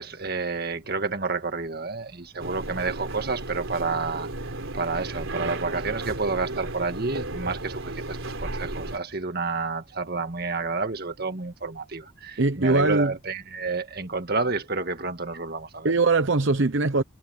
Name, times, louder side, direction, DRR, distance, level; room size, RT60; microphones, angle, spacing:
voice 1, 0.0-4.3 4.7-15.9, right 4 dB, 50° right, 1.8 m, -30 dB
sound 1, 2.4-9.0, right 2 dB, 80° right, 3.6 m, -34 dB
voice 2, 12.4-13.1 15.8-17.0, right 3 dB, 65° right, 0.9 m, -21 dB
head